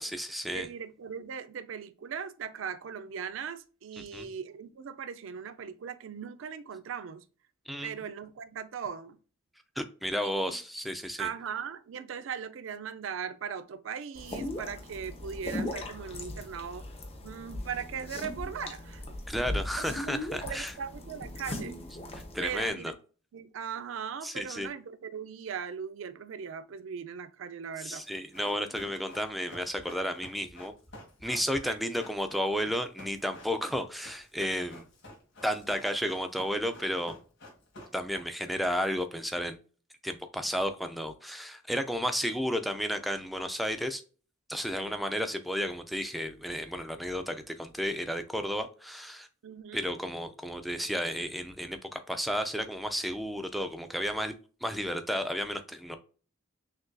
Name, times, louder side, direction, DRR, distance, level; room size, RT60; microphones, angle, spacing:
voice 1, 0.0-0.7 4.0-4.3 7.7-8.0 9.8-11.3 19.3-20.7 22.3-22.9 24.2-24.7 27.8-30.7 31.2-34.8 35.4-37.1 37.9-39.6 40.0-44.0 44.5-49.3 49.7-54.3 54.6-56.0, equal, ahead, 0.4 m, -32 dB
voice 2, 0.5-7.2 7.8-9.2 10.2-10.6 11.2-16.9 17.2-19.0 20.4-21.8 22.4-22.9 23.3-28.0 31.6-31.8 44.7-45.0 49.4-49.9, right 7 dB, 65° right, 0.4 m, -39 dB
sound 1, 14.1-22.7, left 1 dB, 30° left, 0.8 m, -38 dB
Run, 28.0-38.6 38.9-39.0, left 1 dB, 60° left, 1.5 m, -50 dB
6.2 x 2.6 x 2.2 m
head